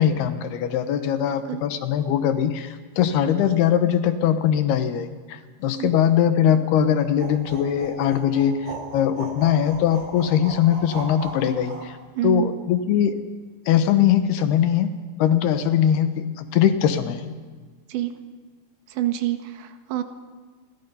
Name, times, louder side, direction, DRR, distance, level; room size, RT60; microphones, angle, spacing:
voice 1, 0.0-12.0 12.2-13.2 13.7-17.3, left 9 dB, 70° left, 9 dB, 3.1 m, -21 dB
voice 2, 1.3-1.6 5.8-5.9 12.2-12.5 17.9-18.1 18.9-20.0, right 14 dB, 80° right, 8 dB, 3.7 m, -27 dB
sound 1, 7.2-11.9, right 2 dB, 25° right, 4.0 m, -37 dB
29.0 x 23.0 x 5.7 m, 1.4 s
omnidirectional pair, 5.2 m